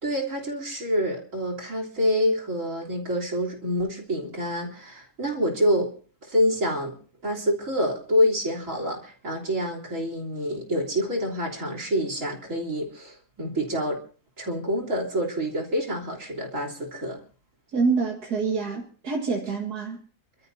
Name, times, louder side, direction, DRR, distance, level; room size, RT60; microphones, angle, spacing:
voice 1, 0.0-5.9 6.2-6.9 7.2-14.0 14.4-17.2, equal, 50° right, 1 dB, 3.9 m, -27 dB
voice 2, 17.7-20.0, right 4 dB, 75° right, -1 dB, 2.5 m, -26 dB
29.5 x 13.0 x 2.8 m, 0.41 s
omnidirectional pair, 1.7 m